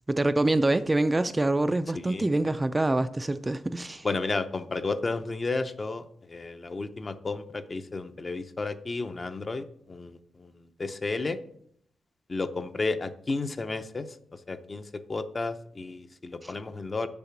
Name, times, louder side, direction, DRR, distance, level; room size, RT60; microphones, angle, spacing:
voice 1, 0.1-4.1 16.4-16.5, right 2 dB, 15° right, 0.3 m, -25 dB
voice 2, 1.9-2.3 4.0-10.5 10.8-11.4 12.3-14.1 14.5-17.1, left 3 dB, 30° left, 0.6 m, -32 dB
7.4 x 7.0 x 5.8 m
wide cardioid pair, 125°, 0 cm